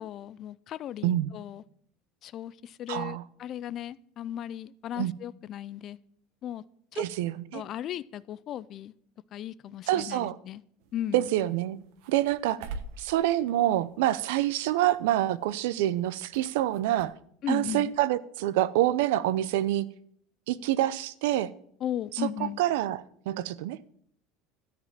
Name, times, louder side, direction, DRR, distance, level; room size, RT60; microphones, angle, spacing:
voice 1, 0.0-1.6 2.2-6.0 6.4-6.6 6.9-7.0 7.5-8.9 9.3-10.6 10.9-11.3 17.4-18.0 21.8-22.6, left 11 dB, 35° left, 19 dB, 0.3 m, -36 dB
voice 2, 2.9-3.2 5.0-5.1 7.0-7.6 9.9-10.4 11.1-11.8 12.1-12.6 13.0-17.1 17.5-19.9 20.5-21.5 22.6-23.8, right 14 dB, 80° right, 17 dB, 0.6 m, -26 dB
sound 1, 10.8-17.1, right 4 dB, 65° right, 1.0 m, -47 dB
13.0 x 4.9 x 7.4 m, 0.66 s
cardioid pair, 165°, 0 cm